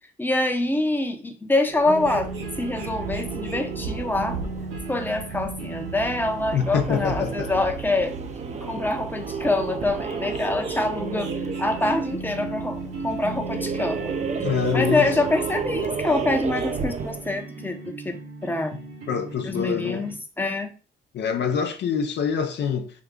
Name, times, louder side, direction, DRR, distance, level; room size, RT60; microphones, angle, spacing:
voice 1, 0.2-2.3 2.6-4.4 4.9-8.2 8.6-11.3 11.6-14.1 14.7-18.2 18.4-18.7 19.4-20.7, left 2 dB, 10° left, 0.7 m, -25 dB
sound 1, 1.7-17.4, right 5 dB, 35° right, 0.5 m, -34 dB
sound 2, 1.9-20.1, right 3 dB, 85° right, 1.6 m, -36 dB
sound 3, 2.0-17.0, right 5 dB, 65° right, 1.1 m, -39 dB
voice 2, 6.5-7.5 14.4-15.1 19.1-20.0 21.1-22.9, left 7 dB, 60° left, 0.6 m, -25 dB
4.7 x 2.3 x 3.6 m
cardioid pair, 90°, 20 cm